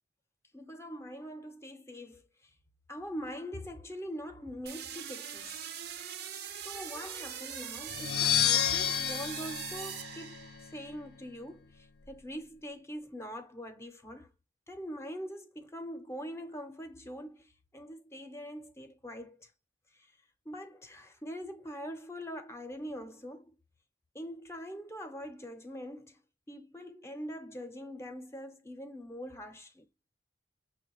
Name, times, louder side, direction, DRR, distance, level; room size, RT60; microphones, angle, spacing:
voice 1, 0.5-2.5 2.9-5.5 6.5-14.3 14.7-19.5 19.9-20.1 20.5-23.6 24.1-26.2 26.5-29.9, equal, 15° left, 0.6 m, -43 dB
sound 1, 4.7-10.9, right 8 dB, 60° right, 0.6 m, -42 dB
sound 2, 7.9-10.7, left 10 dB, 65° left, 0.5 m, -30 dB
6.1 x 2.2 x 3.0 m
head